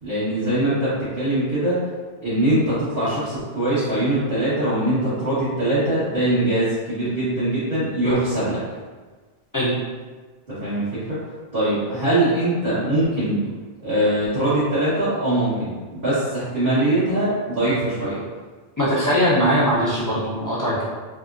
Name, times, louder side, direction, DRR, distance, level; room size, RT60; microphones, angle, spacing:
voice 1, 0.0-1.8 2.2-8.6 10.6-11.2 11.5-13.4 13.8-18.2, right 1 dB, 60° right, -15 dB, 1.7 m, -22 dB
voice 2, 18.8-20.8, equal, 20° left, -8 dB, 0.7 m, -20 dB
3.5 x 3.4 x 2.5 m, 1.4 s
omnidirectional pair, 1.1 m